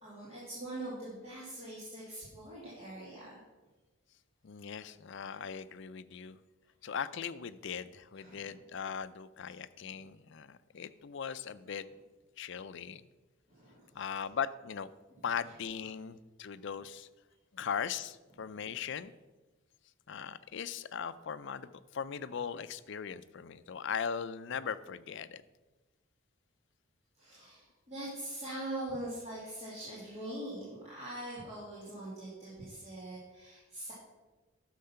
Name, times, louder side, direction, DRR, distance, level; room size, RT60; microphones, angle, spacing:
voice 1, 0.0-3.4 5.2-5.4 8.1-8.6 9.9-10.1 13.5-14.0 15.1-15.3 16.5-16.6 18.4-18.5 27.2-33.9, right 1 dB, 30° right, -8 dB, 2.3 m, -43 dB
voice 2, 4.4-6.4 6.8-11.8 12.4-13.0 13.9-14.9 15.2-17.1 17.5-19.1 20.1-25.4, left 7 dB, 55° left, 14 dB, 0.4 m, -39 dB
10.0 x 6.5 x 5.7 m, 1.2 s
head